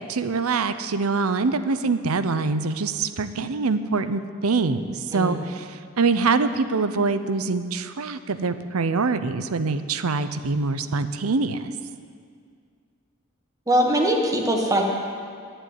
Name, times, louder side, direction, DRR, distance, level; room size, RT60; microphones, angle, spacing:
voice 1, 0.0-11.7, right 4 dB, 90° right, 11 dB, 0.7 m, -24 dB
voice 2, 13.7-14.8, right 1 dB, 15° right, 1 dB, 1.5 m, -21 dB
11.5 x 7.9 x 9.4 m, 2.2 s
head